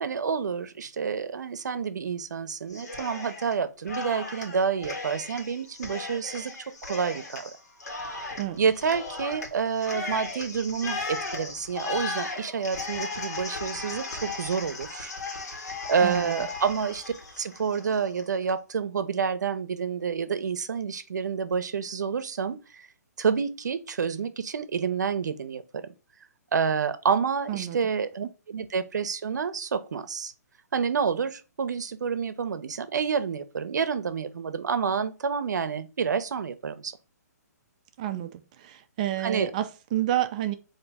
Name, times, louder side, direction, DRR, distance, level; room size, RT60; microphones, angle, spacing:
voice 1, 0.0-6.5 6.8-7.5 8.6-15.1 15.5-15.6 15.9-17.0 17.4-22.9 23.2-25.6 26.5-30.3 30.7-36.9 39.2-39.5, right 6 dB, 85° right, 0.6 m, -28 dB
Cheering, 2.7-3.6 3.9-18.2, left 3 dB, 70° left, 1.4 m, -36 dB
voice 2, 16.0-16.5 27.5-27.8 38.0-40.5, right 13 dB, 25° right, 0.3 m, -30 dB
3.9 x 2.7 x 3.4 m
hypercardioid pair, 160°, 9 cm